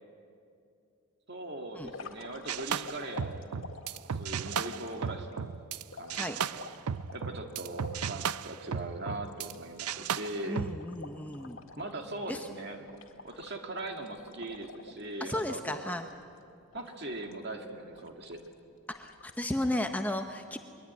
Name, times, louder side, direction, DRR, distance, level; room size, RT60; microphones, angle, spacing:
voice 1, 1.3-3.6 4.1-5.6 5.9-6.7 7.1-10.6 11.8-12.9 13.2-15.8 16.7-18.4, right 2 dB, 50° right, 4 dB, 2.1 m, -40 dB
sound 1, 1.8-5.4 5.9-8.4 8.8-8.9 9.1-12.0 12.3-12.5 12.9-15.4 15.9-16.4 16.7-17.4 17.9-18.5 18.9-19.4, left 4 dB, 65° left, 1.9 m, -48 dB
sound 2, 2.5-5.8 6.1-9.5 9.8-10.8, right 7 dB, 90° right, 0.5 m, -35 dB
voice 2, 10.5-11.6 12.3-12.5 15.2-16.1 19.0-20.6, left 1 dB, 5° left, 6 dB, 0.7 m, -34 dB
22.0 x 22.0 x 9.5 m, 2.5 s
head